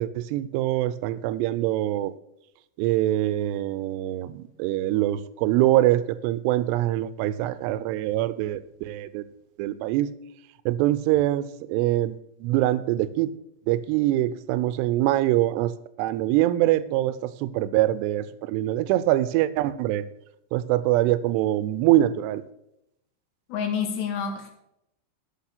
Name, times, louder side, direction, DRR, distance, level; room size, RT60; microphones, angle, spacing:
voice 1, 0.0-2.1 2.8-9.2 9.6-10.1 10.7-12.1 12.4-13.3 13.7-15.7 16.0-20.1 20.5-22.4, right 14 dB, 80° right, 15 dB, 2.5 m, -24 dB
voice 2, 23.5-24.5, left 7 dB, 75° left, 4 dB, 3.5 m, -28 dB
12.0 x 6.1 x 5.9 m, 0.81 s
omnidirectional pair, 5.1 m